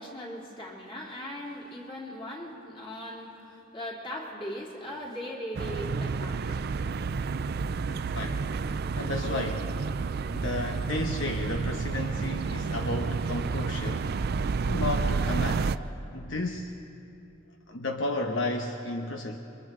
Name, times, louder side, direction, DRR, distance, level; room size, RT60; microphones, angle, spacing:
voice 1, 0.0-6.7 7.3-7.4, equal, 25° left, -3 dB, 3.3 m, -39 dB
sound 1, 5.5-15.8, right 4 dB, 50° right, 0.4 m, -30 dB
voice 2, 7.9-9.7 10.3-14.1 14.7-15.7 16.1-16.8 17.7-19.4, left 2 dB, 65° left, 3 dB, 1.0 m, -33 dB
28.5 x 23.5 x 3.8 m, 2.8 s
head